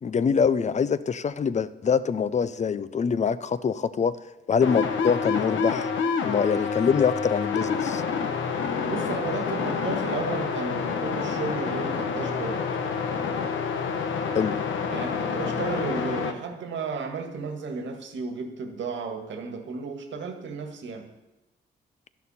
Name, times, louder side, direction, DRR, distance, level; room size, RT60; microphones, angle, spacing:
voice 1, 0.0-4.2 4.5-5.9 6.2-8.0 14.3-14.6, left 6 dB, 35° left, 0.6 m, -24 dB
sound 1, 4.6-16.3, left 6 dB, 85° left, 1.1 m, -28 dB
voice 2, 8.8-12.7 14.9-21.1, right 4 dB, 75° right, 1.8 m, -33 dB
13.0 x 11.0 x 4.3 m
cardioid pair, 105°, 20 cm